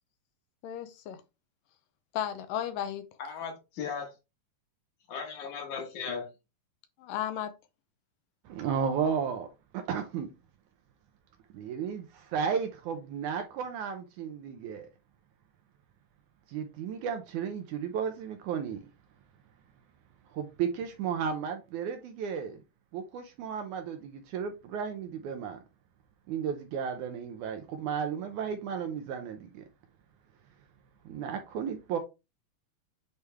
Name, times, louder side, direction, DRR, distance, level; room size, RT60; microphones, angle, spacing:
voice 1, 0.6-1.2 2.1-3.0 7.0-7.5, left 10 dB, 80° left, 2.2 m, -34 dB
voice 2, 3.2-4.1 5.1-6.3, left 6 dB, 65° left, 2.6 m, -37 dB
voice 3, 8.5-10.3 11.5-14.9 16.5-18.8 20.3-22.6 22.9-25.6 26.3-29.7 31.1-32.0, right 7 dB, 75° right, 1.9 m, -34 dB
8.2 x 3.4 x 3.4 m
omnidirectional pair, 4.0 m